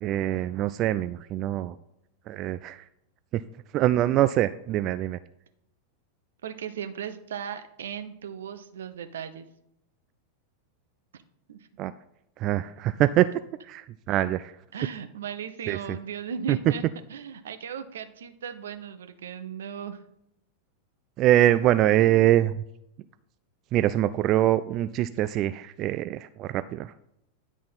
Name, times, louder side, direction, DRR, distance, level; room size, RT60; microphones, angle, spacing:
voice 1, 0.0-1.8 2.3-2.8 3.3-3.4 3.7-5.2 11.8-11.9 12.4-14.5 15.7-15.8 16.5-16.6 21.2-22.5 23.7-26.9, right 13 dB, 35° right, 14 dB, 0.3 m, -24 dB
voice 2, 6.4-9.5 11.5-11.6 14.7-16.8 17.1-20.0, right 7 dB, 65° right, 9 dB, 0.8 m, -37 dB
10.5 x 4.2 x 5.5 m, 0.81 s
figure-of-eight pair, 90°, 0 cm